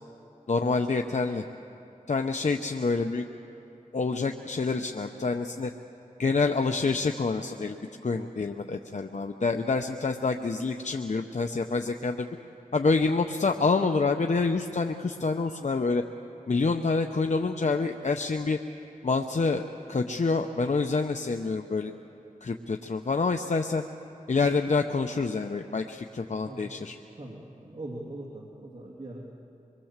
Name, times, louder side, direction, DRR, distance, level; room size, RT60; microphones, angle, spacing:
voice 1, 0.5-1.4 2.1-3.2 3.9-5.7 6.2-12.3 12.7-16.0 16.5-18.6 19.0-21.9 22.4-23.8 24.3-27.0, left 4 dB, 60° left, 5 dB, 0.8 m, -27 dB
voice 2, 27.2-29.2, right 1 dB, 50° right, -3 dB, 2.7 m, -41 dB
25.0 x 22.5 x 7.4 m, 2.9 s
wide cardioid pair, 65°, 14 cm